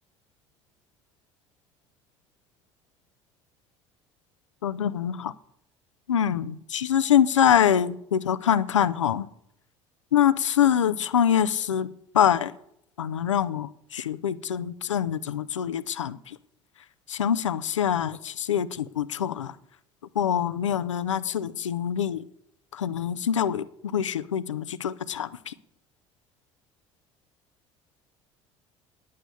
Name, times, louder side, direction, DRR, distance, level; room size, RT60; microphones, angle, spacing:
voice 1, 4.6-5.3 6.1-9.3 10.1-11.9 12.1-12.5 13.0-16.4 17.1-19.5 20.2-22.2 22.7-23.6 23.9-25.5, left 9 dB, 80° left, 0.5 m, -24 dB
9.9 x 8.4 x 6.8 m
figure-of-eight pair, 60°, 15 cm